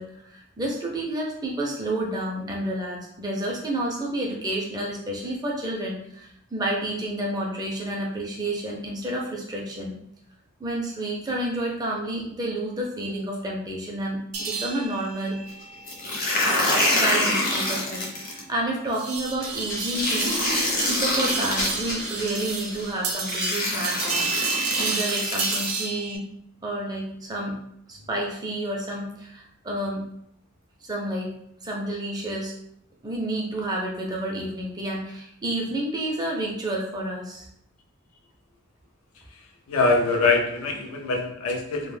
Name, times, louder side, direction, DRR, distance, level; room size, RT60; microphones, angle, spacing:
voice 1, 0.0-9.9 10.6-15.4 16.9-20.4 20.7-24.3 24.5-26.3 26.6-27.6 27.9-30.0 30.8-31.3 31.6-32.5 33.0-37.4, right 1 dB, 20° right, -2 dB, 0.4 m, -30 dB
sound 1, 14.3-26.2, right 5 dB, 80° right, 0.4 m, -32 dB
sound 2, 15.9-18.4 19.9-21.7 22.7-22.8 23.3-25.7, left 1 dB, 40° left, 0.5 m, -25 dB
sound 3, 19.4-23.3, left 1 dB, 65° left, 0.8 m, -34 dB
voice 2, 39.7-42.0, left 3 dB, 90° left, 2 dB, 0.5 m, -23 dB
2.1 x 2.0 x 3.2 m, 0.73 s
head